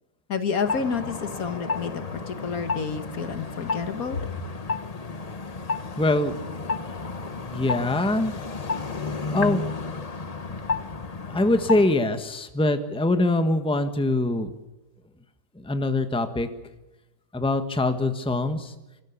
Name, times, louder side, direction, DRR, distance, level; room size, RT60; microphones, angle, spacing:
voice 1, 0.3-4.3, left 5 dB, 60° left, 9 dB, 1.8 m, -29 dB
sound 1, 0.6-12.0, left 4 dB, 30° left, 0.9 m, -32 dB
voice 2, 6.0-6.4 6.8-6.9 7.4-8.3 9.3-9.7 11.2-14.5 15.5-16.5 17.3-18.7, left 2 dB, 5° left, 8 dB, 1.3 m, -23 dB
25.5 x 13.0 x 8.4 m, 0.99 s
omnidirectional pair, 1.7 m